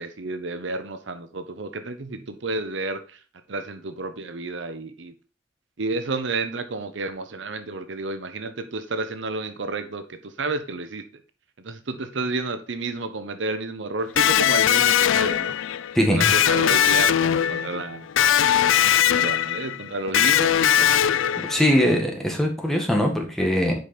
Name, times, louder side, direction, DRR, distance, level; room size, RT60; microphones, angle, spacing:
voice 1, 0.0-3.2 3.5-5.1 5.8-11.0 11.6-15.5 16.1-18.1 18.7-20.9, right 3 dB, 70° right, 0.8 m, -31 dB
Electric guitar, 14.2-21.9, left 10 dB, 90° left, 0.4 m, -20 dB
voice 2, 15.9-16.3 21.4-23.7, equal, ahead, 1.6 m, -21 dB
8.0 x 5.1 x 4.3 m
head